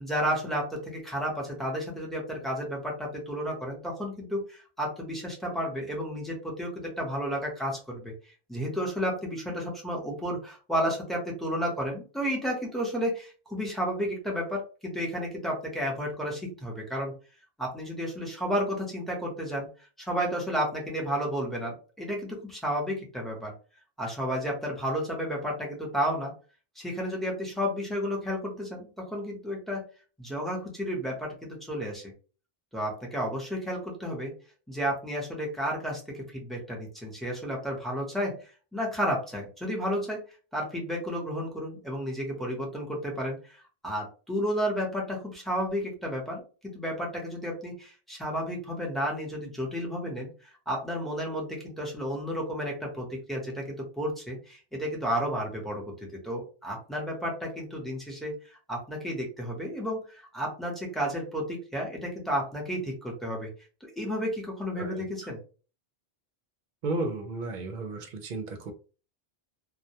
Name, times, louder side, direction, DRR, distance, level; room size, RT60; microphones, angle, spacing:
voice 1, 0.0-8.1 8.5-17.1 17.6-19.7 20.0-23.5 24.0-26.3 26.8-29.9 30.2-32.1 32.7-34.3 34.7-38.4 38.7-40.2 40.5-43.4 43.8-63.5 63.8-65.4, equal, ahead, -2 dB, 0.7 m, -32 dB
voice 2, 64.8-65.1 66.8-68.7, right 2 dB, 60° right, 6 dB, 0.6 m, -33 dB
2.2 x 2.2 x 2.8 m, 0.36 s
omnidirectional pair, 1.0 m